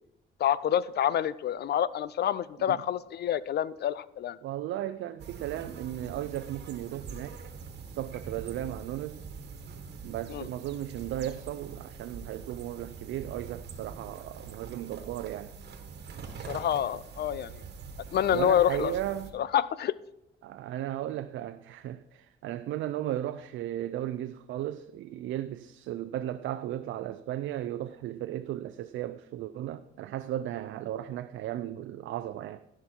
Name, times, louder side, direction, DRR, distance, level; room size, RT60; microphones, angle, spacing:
voice 1, 0.4-4.4 10.3-10.5 16.5-17.5 18.1-18.9 19.3-19.9, left 10 dB, 55° left, 0.4 m, -27 dB
voice 2, 4.4-7.4 7.9-9.2 10.0-15.5 18.3-19.3 20.4-32.6, right 12 dB, 75° right, 0.5 m, -35 dB
sound 1, 5.2-19.3, right 5 dB, 55° right, 1.5 m, -44 dB
15.5 x 5.8 x 4.4 m
cardioid pair, 90°, 20 cm